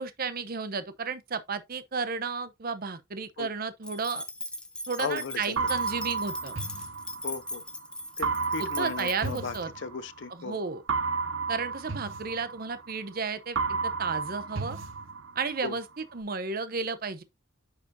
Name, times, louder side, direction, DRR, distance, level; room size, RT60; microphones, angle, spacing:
voice 1, 0.0-4.2 4.9-6.5 8.6-9.7 10.3-10.8 11.5-14.8 15.4-17.2, right 5 dB, 50° right, 0.7 m, -33 dB
sound 1, 3.8-9.6, left 1 dB, 5° left, 0.6 m, -39 dB
voice 2, 5.0-5.5 7.2-7.6 8.2-10.6 15.6-15.8, left 5 dB, 65° left, 0.5 m, -36 dB
sound 2, 5.6-7.6 8.2-10.3 10.9-13.2 13.5-15.6, right 4 dB, 85° right, 0.8 m, -32 dB
9.3 x 4.9 x 2.7 m
head